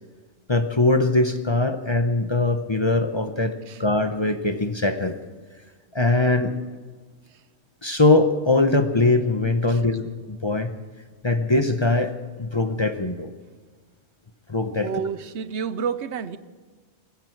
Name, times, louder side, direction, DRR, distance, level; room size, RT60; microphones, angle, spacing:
voice 1, 0.5-3.5 3.8-5.1 5.9-6.5 7.8-10.7 11.2-12.1 12.4-13.3 14.5-14.9, left 2 dB, 25° left, 8 dB, 0.8 m, -21 dB
voice 2, 14.8-16.4, right 6 dB, 75° right, 13 dB, 1.0 m, -30 dB
20.5 x 15.5 x 4.6 m, 1.4 s
omnidirectional pair, 1.2 m